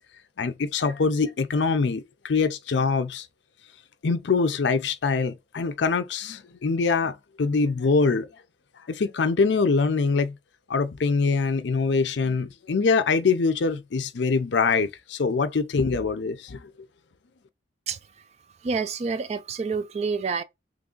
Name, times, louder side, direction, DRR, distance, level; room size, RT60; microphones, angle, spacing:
voice 1, 0.4-3.3 4.0-8.3 8.9-10.3 10.7-16.6, left 4 dB, 70° left, 0.5 m, -24 dB
voice 2, 17.9-18.2 18.6-20.4, right 5 dB, 35° right, 0.3 m, -28 dB
3.2 x 2.4 x 3.7 m
head